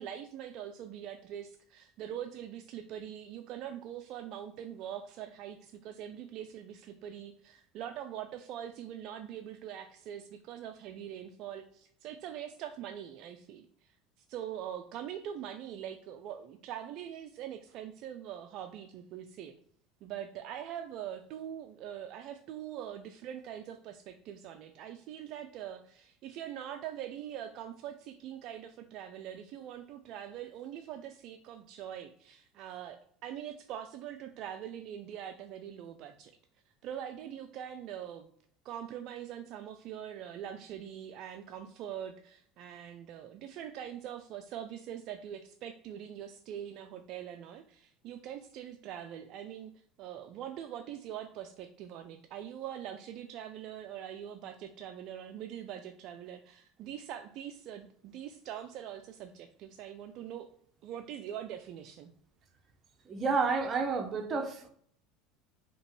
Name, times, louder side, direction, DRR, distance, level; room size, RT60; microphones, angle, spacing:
voice 1, 0.0-14.0 14.3-19.5 20.0-36.3 36.8-38.3 38.6-60.5 60.8-62.1, right 10 dB, 60° right, 0.4 m, -43 dB
voice 2, 63.1-64.7, right 4 dB, 35° right, 0.7 m, -30 dB
5.1 x 2.9 x 3.1 m
supercardioid pair, 100°, 0 cm